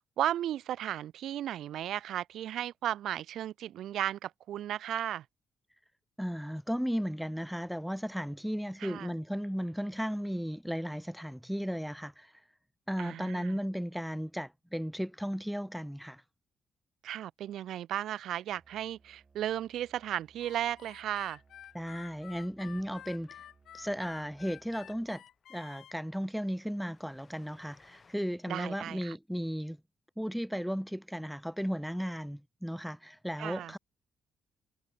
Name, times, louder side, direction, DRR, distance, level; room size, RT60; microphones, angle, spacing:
voice 1, 0.2-5.2 8.8-9.1 13.0-13.6 17.0-21.4 28.5-29.2 33.4-33.7, right 11 dB, 75° right, 0.5 m, -35 dB
voice 2, 6.2-12.3 12.9-16.2 21.7-23.3 23.7-25.2 25.5-29.8 30.2-33.8, equal, ahead, 0.3 m, -35 dB
Musical instrument, 18.5-25.2, right 4 dB, 35° right, 3.0 m, -65 dB
Harmonica, 20.4-25.9, left 11 dB, 70° left, 0.6 m, -51 dB
Train, 23.6-23.7 23.9-24.1 24.3-24.4 24.8-28.2, left 4 dB, 35° left, 3.2 m, -65 dB
cardioid pair, 90°, 0 cm